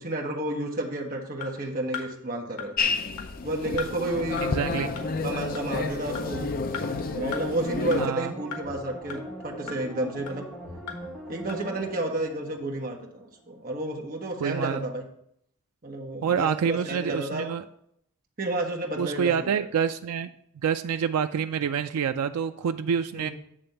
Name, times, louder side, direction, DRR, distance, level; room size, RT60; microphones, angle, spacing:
voice 1, 0.0-2.9 3.4-4.4 5.2-6.5 7.1-10.4 11.3-15.0 15.8-17.5 18.4-19.7 23.1-23.3, right 1 dB, 40° right, 0 dB, 1.1 m, -31 dB
sound 1, 1.4-1.5 1.9-2.1 2.6-2.7 3.2-3.3 3.8-3.9 4.4-4.5 5.0-5.1 5.5-5.7 6.1-6.3 6.7-6.8 7.3-7.4 7.9-8.0 8.5-8.6 9.1-9.2 9.7-9.8 10.3-10.4 10.9-11.0 11.5-11.6, left 8 dB, 90° left, 1.4 m, -36 dB
sound 2, 2.8-8.1, left 4 dB, 40° left, 0.4 m, -30 dB
sound 3, 3.9-13.3 13.6-13.7, right 1 dB, ahead, 1.9 m, -42 dB
voice 2, 4.4-4.9 8.0-8.3 14.4-14.8 16.2-17.6 19.0-20.3 20.6-23.3, right 7 dB, 90° right, 8 dB, 0.4 m, -27 dB
8.8 x 3.4 x 6.6 m, 0.72 s
head